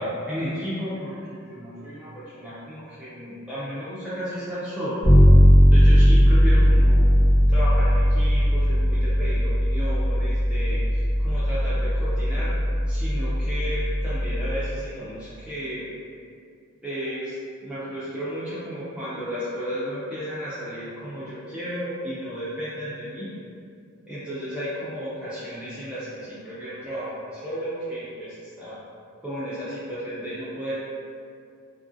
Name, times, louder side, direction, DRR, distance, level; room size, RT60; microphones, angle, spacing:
voice 1, 0.0-5.1 5.7-7.1 7.5-12.5 12.9-15.9 16.8-23.3 24.1-28.8 29.2-30.7, equal, 5° right, -13 dB, 0.4 m, -33 dB
Bass guitar, 5.0-14.8, equal, 65° left, 1.0 m, -18 dB
3.1 x 2.5 x 2.5 m, 2.4 s
head